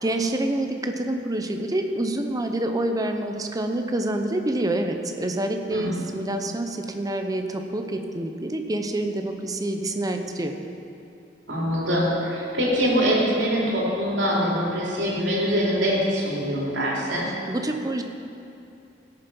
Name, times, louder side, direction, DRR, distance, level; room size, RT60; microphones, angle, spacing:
voice 1, 0.0-10.5 17.5-18.0, right 1 dB, 20° right, 5 dB, 0.7 m, -27 dB
voice 2, 5.7-6.1 11.5-17.2, equal, 70° right, -5 dB, 3.1 m, -24 dB
16.5 x 6.8 x 5.5 m, 2.7 s
head